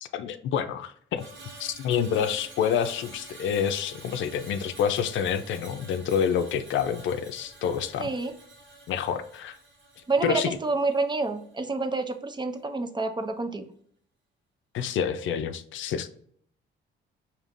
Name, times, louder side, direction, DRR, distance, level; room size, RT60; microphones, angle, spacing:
voice 1, 0.0-1.2 1.6-8.1 8.9-9.6 10.2-10.6 14.7-16.1, left 8 dB, 75° left, 9 dB, 0.5 m, -28 dB
Screech, 1.1-11.5 11.8-12.1, right 2 dB, 65° right, 1.4 m, -48 dB
voice 2, 8.0-8.3 10.1-13.6, right 3 dB, 20° right, 8 dB, 0.6 m, -28 dB
5.0 x 2.8 x 2.5 m, 0.62 s
cardioid pair, 90°, 20 cm